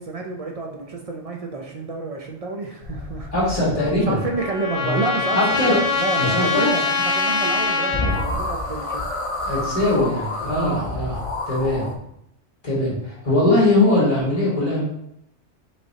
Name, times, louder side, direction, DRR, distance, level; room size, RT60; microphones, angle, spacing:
voice 1, 0.0-3.3 3.9-9.0 10.5-10.8, right 3 dB, 55° right, 1 dB, 0.4 m, -29 dB
sound 1, 2.8-4.4 7.6-7.7 7.9-11.9, left 2 dB, 55° left, 0.3 m, -29 dB
voice 2, 3.3-4.2 4.8-5.0 5.3-5.8 6.2-6.7 9.4-11.9 12.6-14.8, left 2 dB, 30° left, -6 dB, 1.8 m, -21 dB
Trumpet, 3.8-8.3, left 4 dB, 90° left, 0.9 m, -24 dB
5.3 x 3.3 x 2.7 m, 0.78 s
omnidirectional pair, 1.2 m